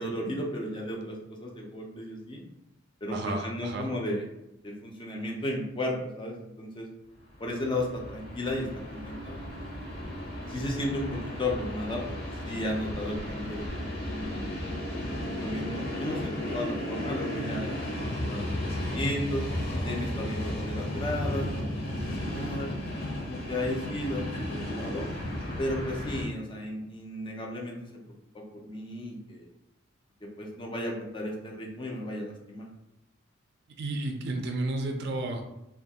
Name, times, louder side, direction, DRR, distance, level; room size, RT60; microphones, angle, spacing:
voice 1, 0.0-2.4 3.0-4.3 4.6-6.9 7.4-9.4 10.5-14.4 15.0-17.7 18.0-19.4 19.8-22.7 23.2-25.1 25.6-28.0 28.3-29.5 30.2-32.7, left 1 dB, 25° left, -1 dB, 0.4 m, -34 dB
voice 2, 3.1-3.9 33.8-35.4, right 2 dB, 55° right, 3 dB, 0.4 m, -32 dB
Train, 7.3-26.2, left 1 dB, 50° left, 0.7 m, -34 dB
2.6 x 2.3 x 2.7 m, 0.86 s
head